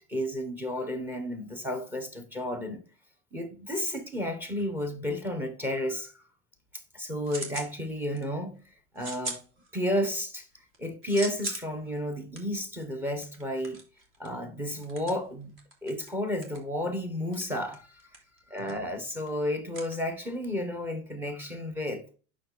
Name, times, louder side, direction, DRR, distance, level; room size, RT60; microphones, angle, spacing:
voice 1, 0.1-2.8 3.3-6.1 6.9-8.6 8.9-9.4 9.7-10.5 10.8-13.8 14.2-15.5 15.8-18.0 18.5-22.0, left 1 dB, 5° right, 1.1 m, -32 dB
sound 1, 6.6-7.8 8.1-8.5 9.0-10.1 10.5-20.6, right 2 dB, 30° right, 2.0 m, -42 dB
9.8 x 6.2 x 4.0 m
supercardioid pair, 170°, 42 cm